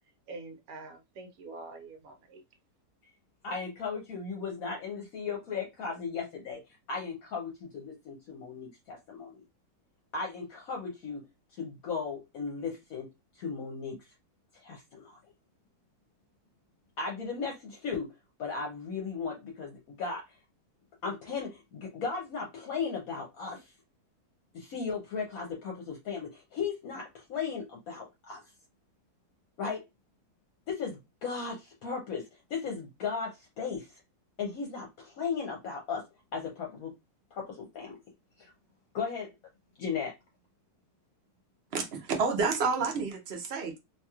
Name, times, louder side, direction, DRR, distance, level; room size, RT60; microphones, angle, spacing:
voice 1, 0.3-2.4, right 3 dB, 70° right, 1.0 m, -45 dB
voice 2, 3.4-9.4 10.1-11.2 11.6-13.1 13.3-14.1 14.5-15.2 17.0-18.1 18.4-20.4 21.0-23.7 24.5-28.4 29.6-29.8 30.7-34.0 34.4-36.0 36.3-36.9 37.3-38.0 38.4-38.5 38.9-39.3 39.8-40.1, left 5 dB, 70° left, 1.1 m, -36 dB
voice 3, 41.7-43.8, right 4 dB, 50° right, 0.8 m, -29 dB
2.8 x 2.8 x 2.3 m
omnidirectional pair, 1.7 m